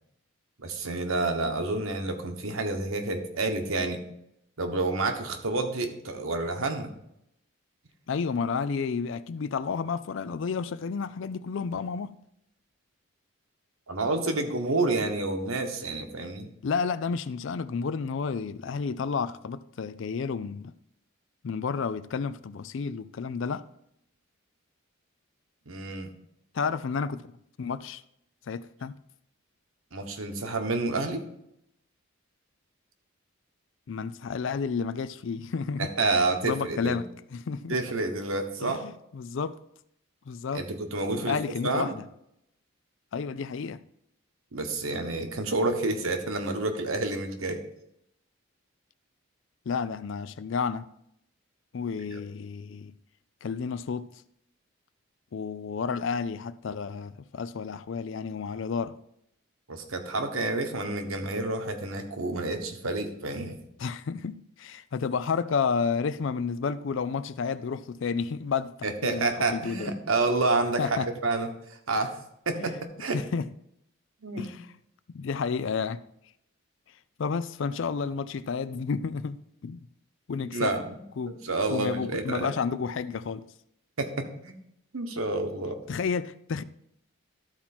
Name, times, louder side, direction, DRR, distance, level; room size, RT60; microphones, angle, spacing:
voice 1, 0.6-4.0 4.6-6.9 13.9-16.5 25.7-26.1 29.9-31.3 35.8-37.0 37.7-38.8 40.5-41.9 44.5-47.6 52.1-52.2 59.7-63.6 68.8-72.1 72.5-73.2 74.2-74.5 80.5-81.0 81.3-82.5 84.0-84.5 84.9-85.8, right 2 dB, 75° right, 1.2 m, -29 dB
voice 2, 8.1-12.1 16.6-20.7 21.4-23.7 26.5-27.2 27.6-28.0 28.5-28.9 33.9-35.9 36.4-37.1 37.3-37.8 38.6-39.6 40.3-40.6 41.2-42.0 43.1-43.8 49.7-50.9 51.7-52.9 53.4-54.1 55.3-59.0 63.8-68.7 69.0-69.9 70.8-71.1 72.5-72.8 73.1-73.5 74.4-74.7 75.1-76.0 77.2-79.8 80.3-80.7 81.2-81.4 81.7-83.4 85.9-86.6, left 5 dB, 60° left, 0.4 m, -31 dB
13.0 x 4.4 x 4.3 m
head